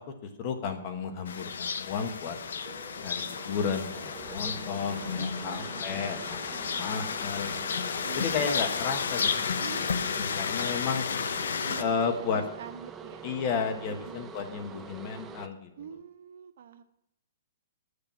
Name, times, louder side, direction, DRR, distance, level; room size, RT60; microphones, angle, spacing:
voice 1, 0.0-2.4 3.0-7.5 8.1-9.3 9.8-9.9 10.2-11.0 11.8-12.4 13.2-15.7, left 6 dB, 35° left, 6 dB, 1.3 m, -33 dB
sound 1, 1.3-11.8, left 6 dB, 80° left, 0.7 m, -32 dB
sound 2, 1.9-15.5, right 6 dB, 15° right, 0.5 m, -46 dB
voice 2, 5.2-5.9 6.5-6.9 8.0-8.4 9.6-10.5 11.6-13.3 13.9-14.2 15.8-16.8, right 8 dB, 60° right, 9 dB, 0.9 m, -45 dB
8.8 x 6.7 x 7.5 m, 0.82 s
hypercardioid pair, 160°, 0 cm